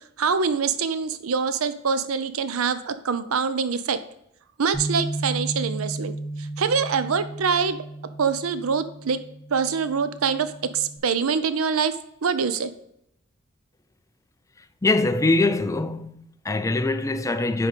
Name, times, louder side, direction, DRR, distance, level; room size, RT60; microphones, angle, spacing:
voice 1, 0.2-4.0 4.6-6.1 6.4-7.8 8.2-9.2 9.5-11.9 12.2-12.7, right 5 dB, 85° right, 0.6 m, -24 dB
Bass guitar, 4.7-11.0, right 2 dB, 15° right, 1.9 m, -34 dB
voice 2, 14.8-17.7, left 2 dB, 15° left, 0.4 m, -23 dB
10.0 x 3.9 x 5.3 m
head